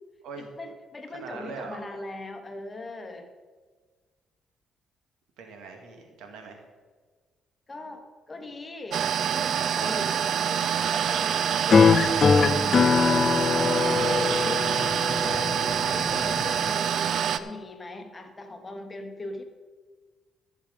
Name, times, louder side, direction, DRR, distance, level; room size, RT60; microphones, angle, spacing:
voice 1, 0.4-3.3 7.7-12.3 13.6-19.4, left 2 dB, 25° left, 5 dB, 1.4 m, -40 dB
voice 2, 1.1-1.8 5.4-6.6 13.5-13.9, right 5 dB, 90° right, 3 dB, 1.9 m, -41 dB
sound 1, 8.9-17.4, right 8 dB, 70° right, 0.5 m, -26 dB
sound 2, 11.7-16.7, left 5 dB, 40° left, 0.5 m, -22 dB
14.0 x 6.6 x 5.3 m, 1.4 s
cardioid pair, 90°, 0 cm